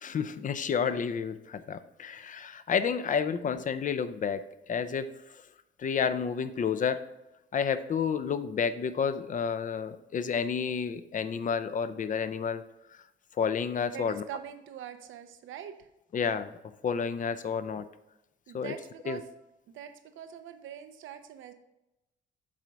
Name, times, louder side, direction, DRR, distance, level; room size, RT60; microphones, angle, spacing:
voice 1, 0.0-4.4 4.7-5.4 5.8-7.0 7.5-12.6 12.9-13.0 13.4-14.2 16.1-16.5 16.8-17.9 18.5-18.7 19.1-19.2, left 6 dB, 40° left, 12 dB, 0.6 m, -30 dB
voice 2, 13.9-15.9 18.5-19.2 19.7-21.5, right 10 dB, 80° right, 8 dB, 0.7 m, -43 dB
7.5 x 3.9 x 4.7 m, 0.92 s
cardioid pair, 90°, 20 cm